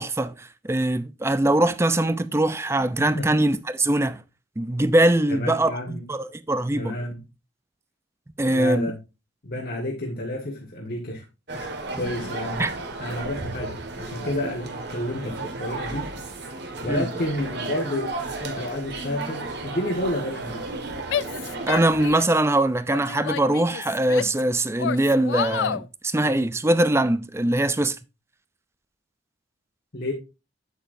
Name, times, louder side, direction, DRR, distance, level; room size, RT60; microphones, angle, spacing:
voice 1, 0.0-4.2 4.6-7.0 8.4-8.9 12.6-12.7 16.9-17.1 21.6-28.0, right 1 dB, 15° right, 0.5 m, -22 dB
voice 2, 5.3-6.0 6.7-7.2 8.5-9.0 9.4-11.2 11.5-11.7 12.0-12.7 13.0-16.1 16.8-20.6 29.9-30.1, left 1 dB, 55° left, 1.6 m, -30 dB
sound 1, 11.5-22.1, right 3 dB, 60° right, 1.8 m, -34 dB
Female speech woman speaking / Yell, 21.1-22.4 22.9-24.4 24.8-25.9, left 8 dB, 70° left, 0.4 m, -30 dB
8.4 x 8.2 x 2.7 m
head